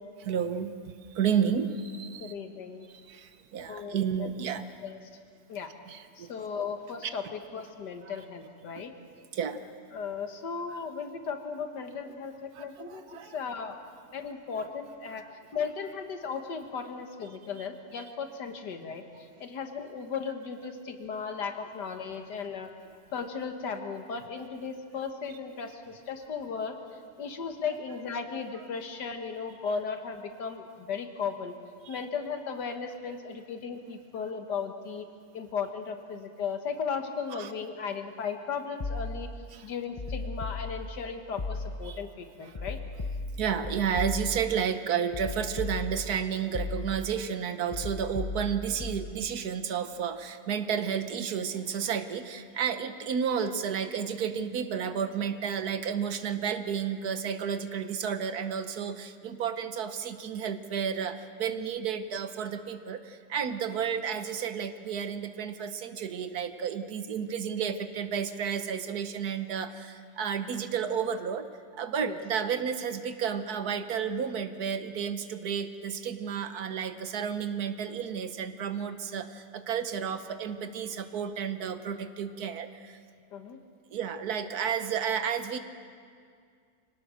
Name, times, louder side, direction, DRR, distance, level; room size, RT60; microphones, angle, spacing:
voice 1, 0.2-2.3 3.1-4.6 5.9-6.3 8.1-8.2 8.7-8.8 9.3-9.6 12.6-13.3 31.9-32.0 37.3-37.5 39.5-39.7 41.9-42.0 42.4-42.5 43.4-71.5 71.7-83.0 83.9-85.6, right 7 dB, 70° right, 9 dB, 1.4 m, -32 dB
voice 2, 2.2-2.9 3.7-4.3 4.8-5.0 5.5-5.7 6.2-8.9 9.9-13.8 14.1-15.3 15.5-19.0 19.4-22.7 23.1-26.8 27.2-31.5 31.9-35.1 35.3-39.3 39.6-42.8 72.0-72.2 83.3-83.6, left 5 dB, 85° left, 6 dB, 2.0 m, -36 dB
sound 1, 38.8-39.4 40.0-41.0 41.4-42.0 42.5-44.6 45.1-46.2 46.5-47.2 47.7-49.1, left 2 dB, 35° left, 0.5 m, -36 dB
24.5 x 18.0 x 6.3 m, 2.2 s
omnidirectional pair, 1.8 m